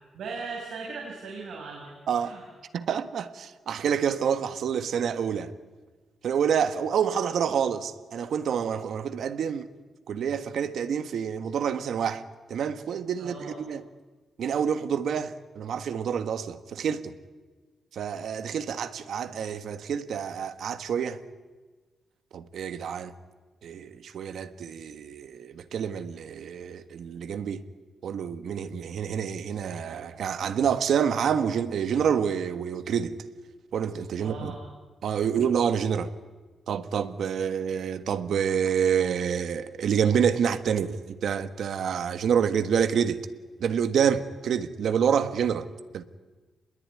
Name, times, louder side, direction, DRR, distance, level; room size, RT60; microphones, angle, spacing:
voice 1, 0.1-2.5 13.2-13.5 34.2-34.6, right 4 dB, 85° right, 5.4 m, -38 dB
voice 2, 2.7-5.5 6.2-9.7 10.1-12.2 12.5-13.8 14.4-17.1 17.9-21.2 22.3-23.1 23.6-27.6 28.0-33.2 33.7-34.5 35.0-36.1 36.7-43.2 43.6-45.7 45.9-46.0, right 7 dB, 70° right, 1.5 m, -27 dB
28.5 x 21.5 x 9.7 m
wide cardioid pair, 170°, 0 cm